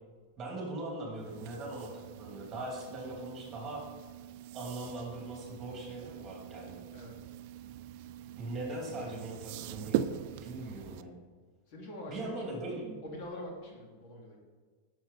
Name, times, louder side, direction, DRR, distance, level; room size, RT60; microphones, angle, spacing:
voice 1, 0.4-3.8 4.5-6.9 8.4-10.1 10.4-11.1 12.1-13.0, right 2 dB, 25° right, -1 dB, 2.9 m, -40 dB
sound 1, 1.2-11.0, right 11 dB, 55° right, 0.4 m, -41 dB
voice 2, 6.9-7.3 11.7-12.6 13.0-14.4, left 1 dB, 50° left, -1 dB, 2.5 m, -45 dB
9.8 x 6.4 x 4.2 m, 1.5 s
supercardioid pair, 140°, 0 cm